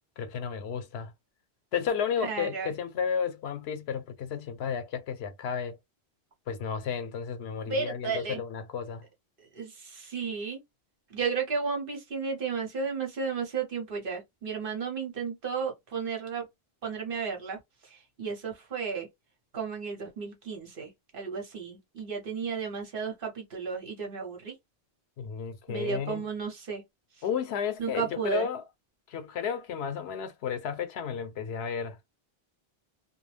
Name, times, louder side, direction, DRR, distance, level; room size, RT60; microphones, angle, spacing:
voice 1, 0.2-1.1 1.7-5.8 6.5-9.0 25.2-26.2 27.2-28.6 29.1-32.0, left 7 dB, 90° left, 0.9 m, -32 dB
voice 2, 2.2-2.7 7.7-8.4 9.5-10.6 11.1-16.5 16.8-19.1 19.5-24.5 25.7-26.8 27.8-28.5, right 5 dB, 60° right, 1.0 m, -33 dB
2.2 x 2.0 x 3.2 m
omnidirectional pair, 1.0 m